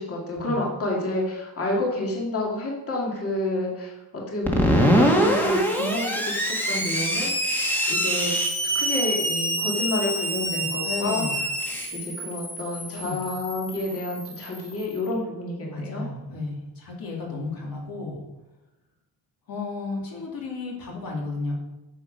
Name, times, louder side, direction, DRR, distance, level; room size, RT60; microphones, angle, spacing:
voice 1, 0.0-8.3 8.7-11.3 11.9-16.1, left 1 dB, 35° left, -2 dB, 2.2 m, -29 dB
Screech, 4.5-14.9, equal, 5° left, 1.6 m, -25 dB
voice 2, 10.5-11.4 12.9-13.2 15.7-18.2 19.5-21.5, left 3 dB, 55° left, -2 dB, 2.6 m, -33 dB
9.3 x 7.0 x 5.4 m, 0.98 s
cardioid pair, 150°, 41 cm